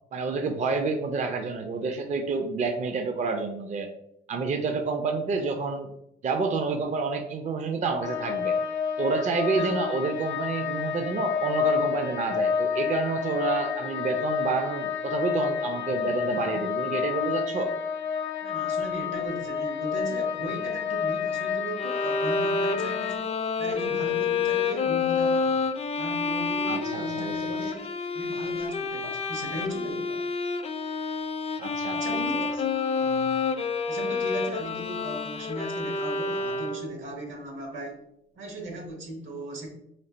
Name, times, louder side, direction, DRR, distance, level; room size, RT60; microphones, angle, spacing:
voice 1, 0.1-3.9 4.3-5.9 6.2-8.6 9.0-17.7 26.7-27.6 31.6-32.5, right 4 dB, 40° right, 5 dB, 0.4 m, -29 dB
sound 1, 8.0-23.2, left 7 dB, 65° left, 0.7 m, -29 dB
voice 2, 18.4-25.6 25.9-27.8 28.1-30.2 31.5-32.5 32.9-33.3 33.8-38.0 38.3-39.7, right 1 dB, 75° right, 2 dB, 1.2 m, -37 dB
Bowed string instrument, 21.8-37.1, left 4 dB, 30° left, 0.4 m, -28 dB
3.2 x 2.5 x 3.8 m, 0.80 s
cardioid pair, 90°, 20 cm